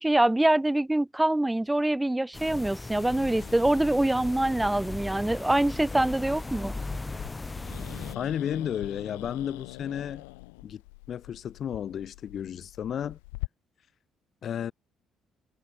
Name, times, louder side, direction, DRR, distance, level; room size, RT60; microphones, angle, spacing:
voice 1, 0.0-6.7, right 1 dB, 10° right, 2.1 m, -24 dB
sound 1, 2.3-8.2, left 2 dB, 20° left, 2.7 m, -37 dB
Growling, 3.0-13.5, left 27 dB, 75° left, 6.8 m, -44 dB
voice 2, 8.1-10.2 10.6-10.8 11.1-13.2 14.4-14.7, left 9 dB, 55° left, 2.4 m, -33 dB
figure-of-eight pair, 45°, 0 cm